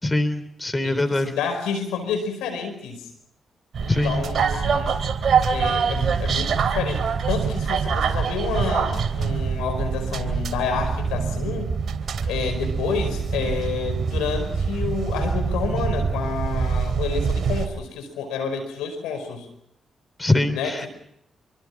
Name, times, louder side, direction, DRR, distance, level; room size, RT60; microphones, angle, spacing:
voice 1, 0.0-1.3 3.9-4.3 20.2-20.9, left 2 dB, 20° left, 12 dB, 3.2 m, -23 dB
voice 2, 0.8-3.1 3.8-5.0 5.5-11.7 12.3-19.5 20.5-20.9, left 6 dB, 85° left, 7 dB, 5.0 m, -29 dB
sound 1, 3.7-17.7, right 6 dB, 60° right, 3.1 m, -25 dB
27.0 x 23.5 x 5.9 m, 0.74 s
hypercardioid pair, 45°, 0 cm